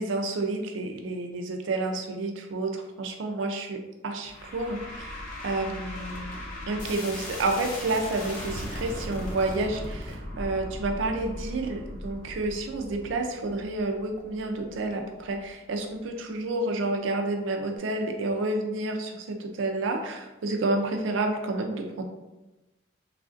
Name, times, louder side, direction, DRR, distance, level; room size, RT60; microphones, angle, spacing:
voice 1, 0.0-3.8 4.0-5.1 5.4-6.4 6.7-22.0, right 2 dB, 75° right, 3 dB, 0.4 m, -30 dB
sound 1, 4.2-15.5, left 1 dB, 40° left, 0.7 m, -38 dB
3.1 x 2.4 x 2.4 m, 1.0 s
head